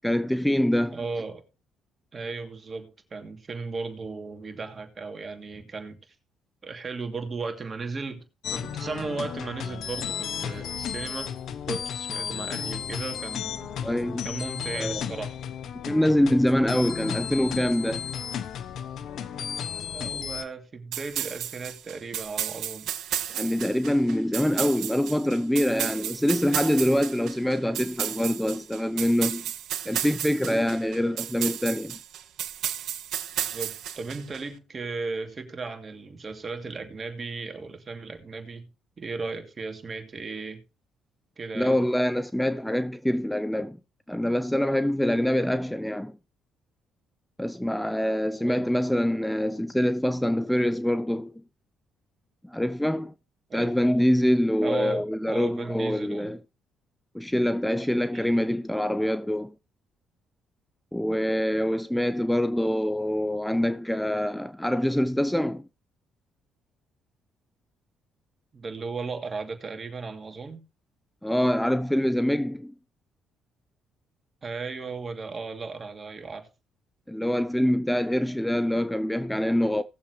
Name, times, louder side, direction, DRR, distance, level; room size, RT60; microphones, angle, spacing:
voice 1, 0.0-1.0 13.8-14.3 14.8-15.0 15.9-18.1 23.3-29.5 29.8-32.0 41.5-43.8 44.1-46.2 47.4-51.4 52.4-53.1 53.5-56.4 57.1-59.5 60.9-65.7 71.2-72.7 77.1-79.8, left 1 dB, 5° left, 0.6 m, -25 dB
voice 2, 0.9-1.4 2.1-6.0 6.6-8.2 8.5-11.3 11.7-13.7 14.2-15.4 19.9-22.9 33.4-38.7 39.0-40.6 41.4-41.8 48.4-48.7 53.5-53.7 54.6-56.3 58.1-58.4 68.5-70.6 74.4-76.5, right 4 dB, 40° right, 2.6 m, -36 dB
sound 1, 8.4-20.4, left 8 dB, 65° left, 0.9 m, -34 dB
sound 2, 20.9-34.4, right 11 dB, 70° right, 0.9 m, -33 dB
19.0 x 7.2 x 3.1 m
hypercardioid pair, 55°, 0 cm